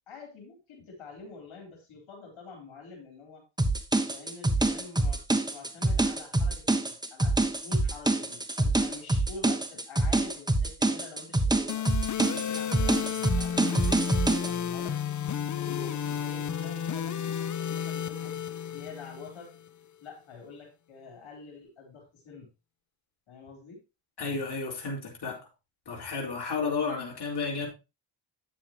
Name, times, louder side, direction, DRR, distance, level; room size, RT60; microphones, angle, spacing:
voice 1, 0.1-3.4 4.0-11.9 12.4-15.0 15.5-18.5 18.7-19.5 20.0-22.5 23.3-23.8, left 4 dB, 75° left, 4.1 m, -46 dB
sound 1, 3.6-14.5, right 2 dB, 10° right, 1.2 m, -26 dB
sound 2, 11.7-19.7, left 8 dB, 40° left, 0.7 m, -32 dB
voice 2, 24.2-25.5 25.9-27.7, left 4 dB, 55° left, 4.0 m, -32 dB
9.9 x 7.5 x 3.0 m
cardioid pair, 70°, 48 cm